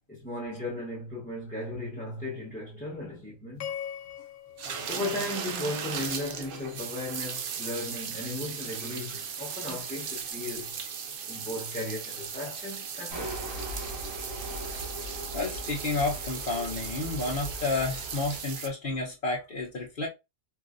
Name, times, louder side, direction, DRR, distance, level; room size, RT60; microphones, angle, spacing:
voice 1, 0.1-3.7 4.8-10.7 11.3-13.6, left 2 dB, 5° left, 0.9 m, -36 dB
sound 1, 3.6-6.0, left 9 dB, 85° left, 1.0 m, -41 dB
sound 2, 4.6-18.7, right 6 dB, 55° right, 0.6 m, -37 dB
ambience metro station city Moscow, 13.1-18.4, right 1 dB, 80° right, 2.9 m, -39 dB
voice 2, 15.3-20.1, left 3 dB, 45° left, 1.0 m, -31 dB
4.7 x 2.6 x 2.5 m
omnidirectional pair, 1.3 m